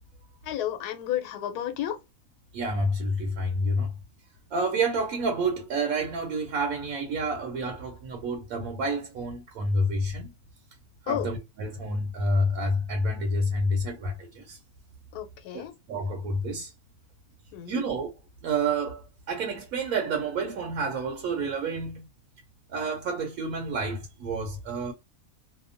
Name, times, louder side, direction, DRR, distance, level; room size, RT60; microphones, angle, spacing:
voice 1, 0.4-2.0 11.1-11.3 15.1-15.7 17.5-17.8, left 11 dB, 90° left, 1.2 m, -32 dB
voice 2, 2.5-3.9 4.5-10.3 11.0-14.6 15.5-16.7 17.7-18.1 18.4-22.0 22.7-24.9, right 1 dB, 70° right, 1.0 m, -29 dB
2.8 x 2.1 x 2.4 m
omnidirectional pair, 1.6 m